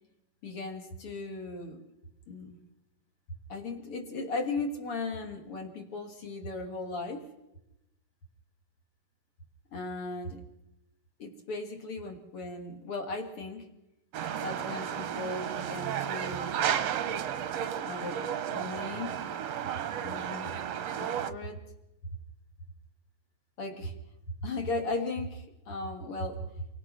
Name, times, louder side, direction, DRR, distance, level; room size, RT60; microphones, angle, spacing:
voice 1, 0.4-1.8 2.3-2.6 3.5-7.3 9.7-10.4 11.2-13.7 14.4-16.9 17.9-19.2 20.0-20.6 20.9-21.6 23.6-23.9 24.4-26.4, left 2 dB, 40° left, 4 dB, 3.5 m, -37 dB
sound 1, 14.1-21.3, right 9 dB, 60° right, 1.8 m, -33 dB
29.5 x 23.5 x 6.4 m, 0.92 s
omnidirectional pair, 4.1 m